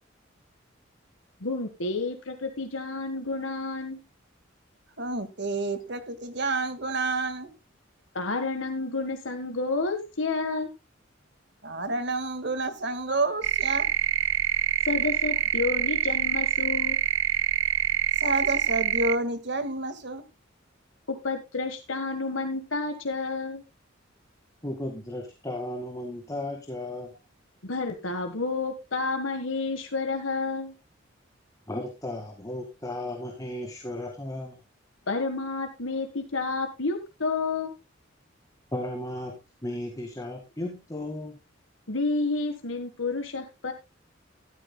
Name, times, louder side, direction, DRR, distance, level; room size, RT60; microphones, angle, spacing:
voice 1, 1.4-4.0 8.1-10.7 14.8-17.0 21.1-23.6 27.6-30.7 35.1-37.7 41.9-43.7, left 3 dB, 85° left, 6 dB, 1.5 m, -30 dB
voice 2, 5.0-7.5 11.6-13.9 18.2-20.2, right 2 dB, 60° right, 10 dB, 1.8 m, -29 dB
sound 1, 13.4-19.2, right 10 dB, 80° right, 0.5 m, -26 dB
voice 3, 24.6-27.1 31.7-34.6 38.7-41.4, left 1 dB, 20° left, 2 dB, 1.9 m, -35 dB
13.5 x 13.0 x 2.2 m, 0.25 s
head